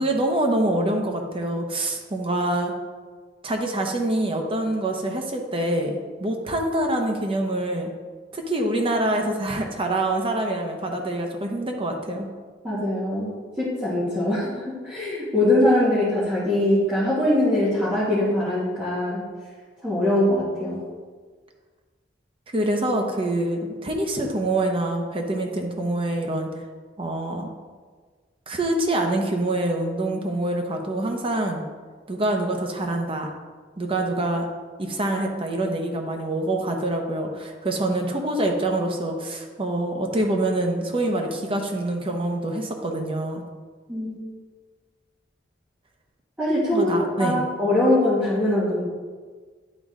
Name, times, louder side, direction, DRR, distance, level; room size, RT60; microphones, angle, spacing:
voice 1, 0.0-2.7 3.4-7.9 8.3-12.3 22.5-26.5 27.0-27.5 28.5-31.6 32.1-33.3 33.8-34.5 34.8-43.4 46.7-47.4, right 1 dB, 30° right, 2 dB, 0.8 m, -25 dB
voice 2, 12.6-19.2 19.8-20.8 43.9-44.1 46.4-48.8, left 1 dB, 5° right, -11 dB, 1.5 m, -22 dB
10.5 x 3.8 x 3.7 m, 1.5 s
head